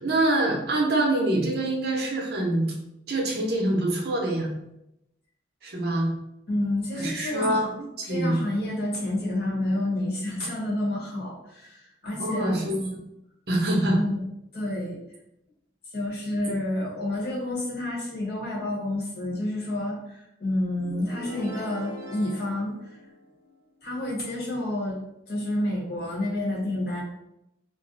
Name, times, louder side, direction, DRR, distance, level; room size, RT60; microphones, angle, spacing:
voice 1, 0.0-2.7 3.1-4.5 5.6-6.1 7.0-8.4 12.2-12.9 13.5-14.0 16.5-16.6, right 1 dB, 55° right, -1 dB, 0.6 m, -25 dB
voice 2, 6.5-7.7 8.0-12.6 13.9-14.2 14.5-15.0 15.8-23.0 23.8-25.0 25.3-27.0, left 1 dB, 55° left, -4 dB, 0.9 m, -29 dB
sound 1, 20.8-23.6, equal, 15° right, 0.8 m, -41 dB
2.5 x 2.0 x 3.8 m, 0.85 s
head